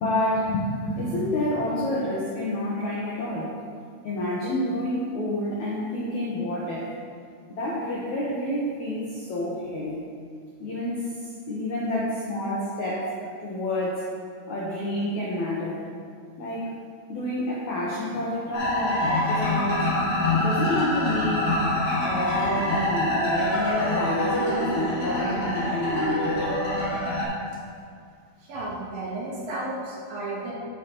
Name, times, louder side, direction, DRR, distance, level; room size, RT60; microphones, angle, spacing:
voice 1, 0.0-3.5 4.0-6.9 7.5-10.0 10.6-14.0 14.5-15.8 16.4-16.7 17.1-19.9 20.3-21.5 22.0-26.5, left 1 dB, 85° left, -6 dB, 1.6 m, -29 dB
sound 1, 18.5-27.2, left 1 dB, 40° left, 2.2 m, -25 dB
voice 2, 28.4-30.5, right 2 dB, 65° right, -5 dB, 2.5 m, -33 dB
12.0 x 8.1 x 3.0 m, 2.2 s
omnidirectional pair, 5.3 m